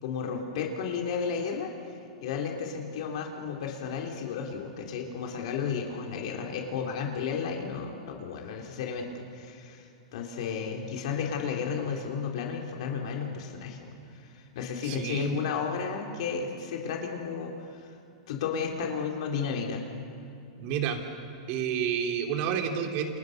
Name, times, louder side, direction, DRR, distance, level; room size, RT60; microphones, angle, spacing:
voice 1, 0.0-1.7 2.2-9.1 9.3-13.9 14.1-17.9 18.3-19.8, left 6 dB, 65° left, 1 dB, 3.5 m, -33 dB
voice 2, 14.8-15.4 20.6-21.0 21.5-23.2, right 8 dB, 45° right, 4 dB, 3.6 m, -29 dB
29.5 x 28.0 x 6.6 m, 2.5 s
hypercardioid pair, 140°, 4 cm